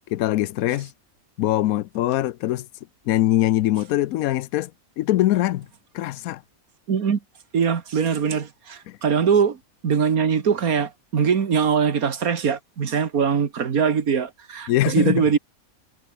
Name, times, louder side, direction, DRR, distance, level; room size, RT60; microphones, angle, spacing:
voice 1, 0.1-0.9 1.4-2.7 3.1-4.7 5.0-5.7 5.9-6.4 8.9-9.0 14.7-15.3, left 14 dB, 80° left, 1.0 m, -22 dB
voice 2, 6.9-7.2 7.5-9.6 9.8-15.4, right 6 dB, 80° right, 2.1 m, -22 dB
omnidirectional pair, 1.5 m